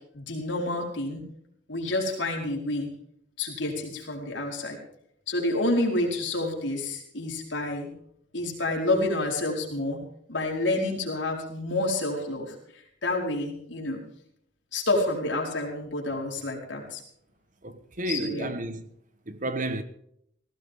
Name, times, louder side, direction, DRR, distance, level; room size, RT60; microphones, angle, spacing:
voice 1, 0.1-1.2 1.7-2.9 3.4-4.8 5.3-7.9 8.3-10.0 10.3-12.6 13.0-14.0 14.7-17.0 18.1-18.5, left 2 dB, 70° left, 4.6 m, -28 dB
voice 2, 17.6-18.9 19.3-19.8, right 2 dB, 45° right, 1.3 m, -31 dB
18.5 x 16.0 x 3.7 m
head